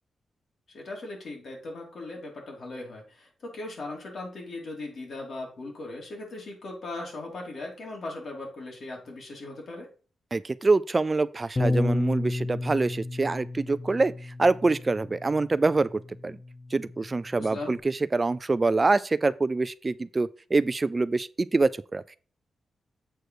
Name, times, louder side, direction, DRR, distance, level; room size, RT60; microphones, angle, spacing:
voice 1, 0.7-9.9 17.4-17.7, left 2 dB, 60° left, 3.3 m, -38 dB
voice 2, 10.3-16.4 16.7-22.2, right 3 dB, 30° right, 0.3 m, -25 dB
Bass guitar, 11.6-17.8, left 2 dB, 30° left, 0.6 m, -32 dB
7.7 x 4.5 x 4.8 m
cardioid pair, 90°, 0 cm